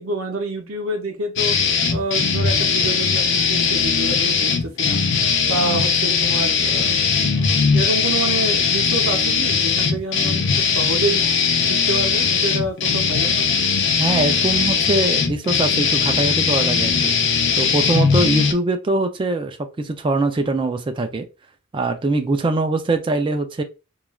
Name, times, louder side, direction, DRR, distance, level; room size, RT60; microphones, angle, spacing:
voice 1, 0.0-1.6 1.9-5.0 5.4-11.3 11.7-13.5, right 2 dB, 80° right, 0.6 m, -28 dB
sound 1, 1.4-18.5, left 5 dB, 60° left, 0.5 m, -19 dB
voice 2, 14.0-17.2 17.6-21.3 21.7-23.6, right 2 dB, 25° right, 0.3 m, -22 dB
3.1 x 2.3 x 2.2 m
head